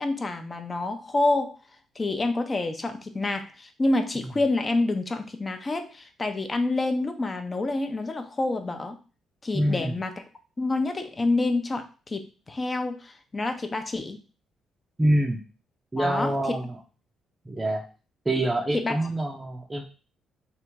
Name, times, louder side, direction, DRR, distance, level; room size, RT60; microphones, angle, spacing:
voice 1, 0.0-1.6 2.0-9.0 9.4-10.1 10.6-14.2 16.0-16.6 18.7-19.0, left 2 dB, 30° left, 7 dB, 0.7 m, -27 dB
voice 2, 9.5-10.0 15.0-15.4 15.9-16.8 17.5-17.8 18.3-19.9, right 1 dB, 20° right, 0 dB, 0.6 m, -25 dB
3.5 x 2.6 x 4.5 m, 0.35 s
cardioid pair, 90°, 0 cm